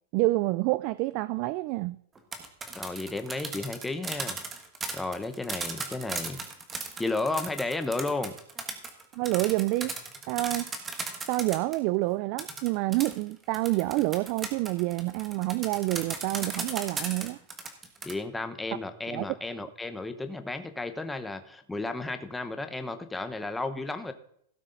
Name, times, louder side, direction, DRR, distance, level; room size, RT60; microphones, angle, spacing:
voice 1, 0.1-2.0 9.1-10.0 10.3-10.7 11.3-17.4 19.1-19.3, right 20 dB, 40° right, 0.3 m, -28 dB
sound 1, 2.2-11.8 12.4-18.1, right 4 dB, 15° right, 1.4 m, -36 dB
voice 2, 2.7-4.4 4.9-6.4 7.0-8.3 18.0-24.1, left 2 dB, 5° left, 0.8 m, -33 dB
16.5 x 6.2 x 3.9 m
supercardioid pair, 150°, 0 cm